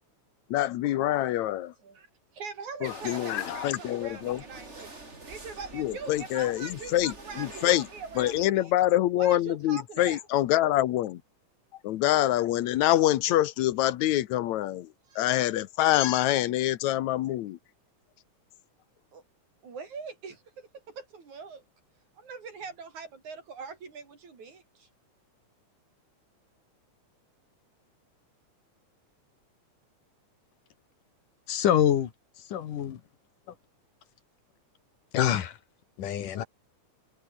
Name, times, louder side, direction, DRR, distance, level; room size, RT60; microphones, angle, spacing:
voice 1, 0.5-1.7 2.8-4.4 5.7-7.9 8.2-11.2 11.8-14.9 15.2-17.6, left 14 dB, 70° left, 2.1 m, -25 dB
voice 2, 2.3-5.0 5.3-8.7 9.2-10.2 15.1-15.3 19.1-19.2 19.6-21.6 22.2-24.9, right 5 dB, 65° right, 5.6 m, -42 dB
sound 1, 2.8-8.5, right 2 dB, 20° right, 4.0 m, -46 dB
voice 3, 31.5-32.1 32.5-33.0 35.1-35.6 36.0-36.4, left 10 dB, 85° left, 3.4 m, -25 dB
omnidirectional pair, 3.6 m